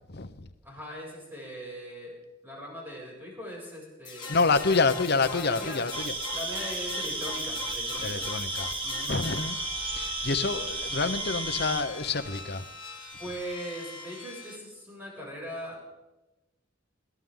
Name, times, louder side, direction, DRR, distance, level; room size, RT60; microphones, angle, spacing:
voice 1, 0.1-0.5 4.3-6.1 8.0-12.7, left 4 dB, 55° left, 10 dB, 1.0 m, -28 dB
voice 2, 0.6-2.1 2.4-4.4 4.6-4.9 5.3-5.8 6.3-8.3 8.8-9.3 13.2-15.8, equal, 10° right, -4 dB, 7.4 m, -40 dB
sound 1, 4.1-14.6, left 4 dB, 25° left, 2.1 m, -41 dB
sound 2, 5.9-11.8, right 3 dB, 25° right, 2.1 m, -33 dB
22.0 x 16.5 x 4.0 m, 1.0 s
head